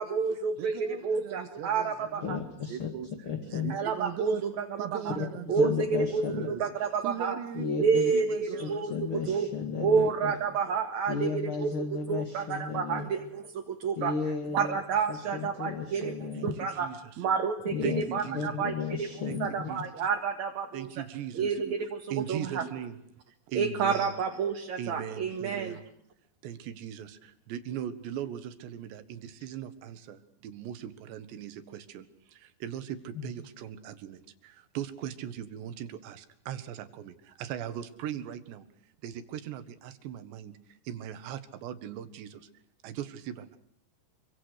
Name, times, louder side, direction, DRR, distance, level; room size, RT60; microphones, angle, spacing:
voice 1, 0.0-2.4 3.7-5.2 5.5-7.4 7.8-8.9 9.3-9.5 9.8-11.7 12.1-14.1 14.5-16.9 17.2-18.7 19.0-19.1 19.4-20.9 21.3-22.7 23.5-25.8, right 5 dB, 50° right, 4 dB, 2.7 m, -29 dB
voice 2, 0.6-3.1 3.4-4.5 4.8-5.7 6.2-6.7 7.0-7.8 8.1-9.0 16.3-17.1 17.8-18.6 19.3-19.4 19.7-19.8 20.7-21.6 22.1-23.0 23.5-24.1 24.8-25.8 26.4-38.7 39.0-42.5 42.8-43.6, right 10 dB, 85° right, 11 dB, 3.9 m, -39 dB
voice 3, 2.2-2.9 3.2-3.7 5.2-5.3 5.5-6.5 7.5-8.1 8.4-10.3 11.1-13.1 14.0-14.8 15.1-16.6 17.7-18.0 18.3-19.7 33.1-33.3, left 5 dB, 40° left, 6 dB, 2.4 m, -34 dB
27.0 x 25.0 x 6.5 m, 0.71 s
omnidirectional pair, 4.9 m